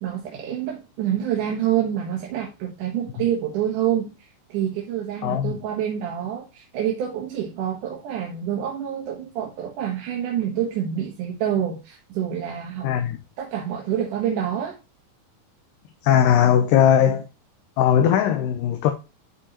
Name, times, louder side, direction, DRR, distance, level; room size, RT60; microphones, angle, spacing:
voice 1, 0.0-4.1 4.5-12.9 13.4-14.8, right 10 dB, 65° right, 2.5 m, -27 dB
voice 2, 5.2-5.6 12.8-13.2 16.0-17.3 17.8-18.9, left 9 dB, 75° left, 2.2 m, -19 dB
11.0 x 4.5 x 2.9 m
omnidirectional pair, 4.4 m